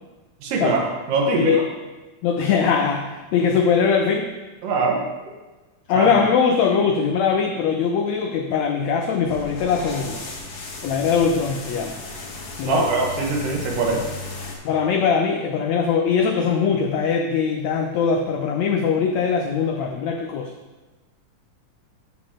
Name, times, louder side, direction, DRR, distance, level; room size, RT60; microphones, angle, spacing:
voice 1, 0.4-0.8 1.1-1.7 4.6-5.0 5.9-6.1 12.7-14.1, right 3 dB, 80° right, -1 dB, 3.0 m, -22 dB
voice 2, 2.2-4.3 5.9-10.2 10.8-12.0 12.6-12.9 14.6-20.5, left 6 dB, 85° left, 4 dB, 1.5 m, -21 dB
sound 1, 9.2-14.6, left 3 dB, 55° left, 2.0 m, -35 dB
13.0 x 6.1 x 3.8 m, 1.2 s
omnidirectional pair, 3.8 m